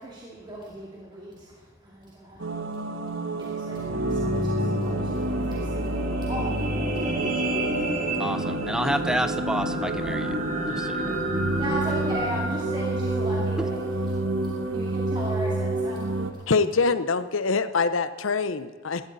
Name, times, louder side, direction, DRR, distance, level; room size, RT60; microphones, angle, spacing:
voice 1, 0.0-2.6 3.0-7.9 10.7-16.4, right 1 dB, 25° right, -5 dB, 2.5 m, -38 dB
sound 1, 2.4-16.3, right 2 dB, 75° right, 1.2 m, -29 dB
sound 2, 3.6-14.0 14.6-14.7, right 1 dB, 40° right, 2.6 m, -30 dB
voice 2, 8.2-10.4 10.7-11.2, equal, 5° right, 10 dB, 0.6 m, -29 dB
voice 3, 16.5-19.0, left 4 dB, 85° left, 12 dB, 0.8 m, -24 dB
18.5 x 12.5 x 4.1 m, 1.5 s
head